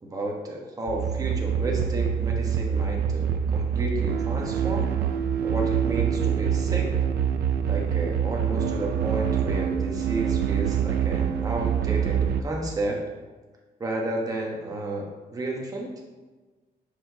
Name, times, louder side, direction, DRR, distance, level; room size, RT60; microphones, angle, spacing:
voice 1, 0.0-4.9 5.4-6.9 7.7-13.0 13.8-15.9, right 1 dB, 20° right, -1 dB, 1.1 m, -32 dB
sound 1, 0.9-12.4, right 8 dB, 85° right, 0.5 m, -25 dB
9.7 x 4.9 x 2.8 m, 1.3 s
cardioid pair, 165°, 16 cm